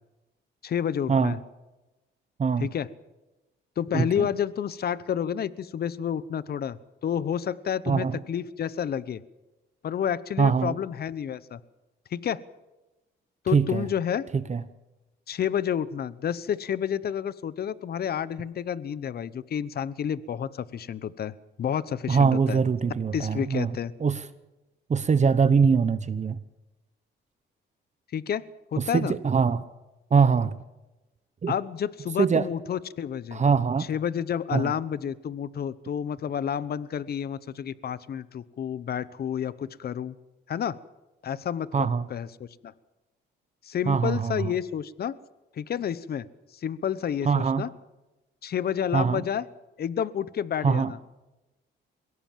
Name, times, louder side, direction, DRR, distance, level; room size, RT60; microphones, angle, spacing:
voice 1, 0.6-1.4 2.6-2.9 3.8-9.2 9.8-11.6 12.1-12.4 13.4-14.2 15.3-22.6 23.1-23.9 28.1-28.4 28.7-29.1 31.5-33.4 33.9-40.1 40.5-40.8 41.2-42.7 43.6-45.1 45.5-46.3 46.5-47.7 48.4-49.4 49.8-51.0, left 8 dB, 50° left, 18 dB, 0.9 m, -30 dB
voice 2, 3.9-4.3 7.9-8.2 10.4-10.7 13.5-13.8 14.5-14.6 22.1-23.7 24.0-24.2 24.9-26.4 28.8-29.7 30.1-30.6 31.4-31.5 32.2-32.5 33.3-33.9 34.5-34.7 41.7-42.0 43.9-44.5 47.2-47.6 48.9-49.2 50.6-50.9, right 5 dB, 35° right, 14 dB, 1.0 m, -23 dB
22.0 x 17.0 x 7.4 m, 1.0 s
cardioid pair, 90°, 20 cm